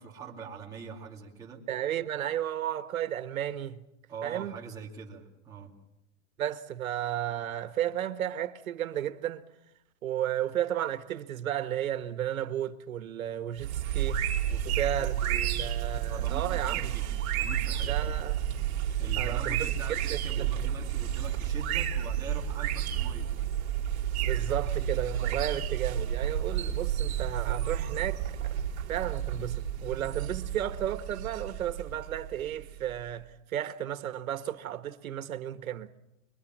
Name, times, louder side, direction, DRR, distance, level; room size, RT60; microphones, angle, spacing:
voice 1, 0.0-1.6 4.1-5.7 14.5-14.8 15.3-15.4 16.0-17.1 17.3-18.0 19.0-23.3, right 5 dB, 10° right, 2.6 m, -43 dB
voice 2, 1.7-3.8 4.2-4.6 6.4-9.4 10.0-14.2 14.6-16.9 17.8-18.4 19.2-20.5 24.2-28.5 28.9-35.9, right 11 dB, 90° right, 1.6 m, -33 dB
sound 1, 13.6-33.0, right 10 dB, 50° right, 2.6 m, -31 dB
24.5 x 23.0 x 7.5 m
supercardioid pair, 175°, 40 cm